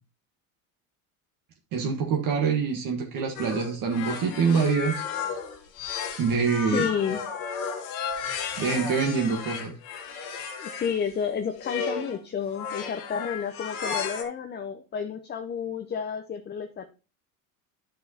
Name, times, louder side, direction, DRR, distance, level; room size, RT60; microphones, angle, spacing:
voice 1, 1.7-5.0 6.2-6.9 8.6-9.7, right 5 dB, 50° right, 1 dB, 1.6 m, -25 dB
sound 1, 3.4-11.0 11.6-12.2 12.5-14.2, left 6 dB, 80° left, 1.9 m, -34 dB
voice 2, 6.5-7.2 10.6-16.8, left 7 dB, 25° left, 6 dB, 0.7 m, -31 dB
11.0 x 5.6 x 2.8 m, 0.33 s
supercardioid pair, 110°, 42 cm